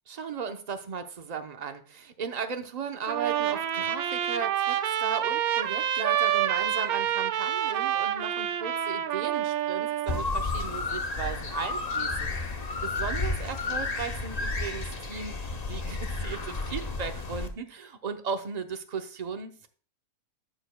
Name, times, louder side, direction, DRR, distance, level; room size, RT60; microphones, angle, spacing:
voice 1, 0.1-15.3 15.7-19.7, right 6 dB, 35° right, 6 dB, 0.7 m, -36 dB
Trumpet, 3.1-10.2, right 10 dB, 85° right, 1.1 m, -28 dB
sound 1, 10.1-17.5, left 3 dB, 35° left, 0.8 m, -32 dB
13.0 x 6.9 x 2.2 m, 0.43 s
omnidirectional pair, 1.5 m